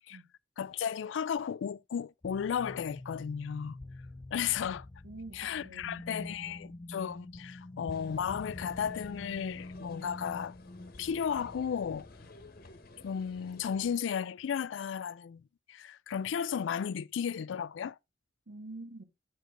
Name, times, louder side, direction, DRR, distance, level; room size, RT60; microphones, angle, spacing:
voice 1, 0.6-3.8 4.3-4.9 5.3-10.6 11.0-12.1 13.0-15.4 15.7-18.0, left 7 dB, 80° left, 0.4 m, -34 dB
sound 1, 2.2-13.5, left 2 dB, 25° left, 0.5 m, -47 dB
voice 2, 5.0-6.3 18.5-19.0, right 2 dB, 75° right, 1.8 m, -46 dB
sound 2, 7.9-14.0, left 2 dB, 55° left, 1.2 m, -54 dB
9.1 x 5.1 x 3.6 m
head